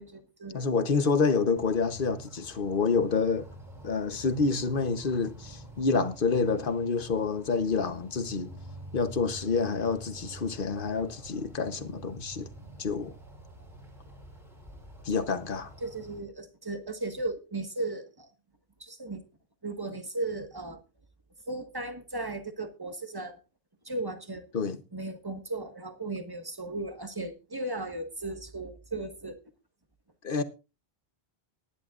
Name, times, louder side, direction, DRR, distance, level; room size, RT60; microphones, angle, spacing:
voice 1, 0.0-0.6 15.1-15.2 15.8-18.3 18.8-19.2 19.6-20.8 21.5-23.4 23.8-24.5 24.9-29.4, right 2 dB, 20° right, 1.5 m, -36 dB
voice 2, 0.5-3.5 3.8-8.5 8.9-12.5 12.8-13.1 15.0-15.7 24.5-24.8 30.2-30.4, left 4 dB, 55° left, 1.1 m, -28 dB
sound 1, 1.6-16.2, right 1 dB, ahead, 3.8 m, -47 dB
20.0 x 10.5 x 2.5 m
omnidirectional pair, 1.1 m